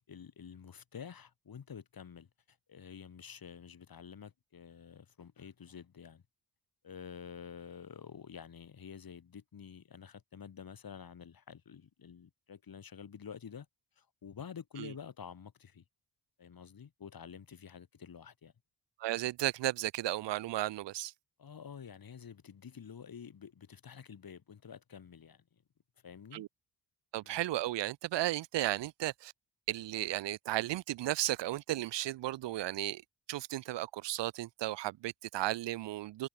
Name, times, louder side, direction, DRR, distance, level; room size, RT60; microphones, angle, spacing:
voice 1, 0.1-6.2 6.8-13.7 14.0-15.8 16.4-18.5 21.4-25.4 26.0-26.4 27.2-27.4, left 7 dB, 55° left, 3.6 m, -49 dB
voice 2, 19.0-21.1 26.3-26.5 27.1-29.3 29.7-33.0 33.3-36.3, right 15 dB, 80° right, 0.6 m, -34 dB
cardioid pair, 105°, 42 cm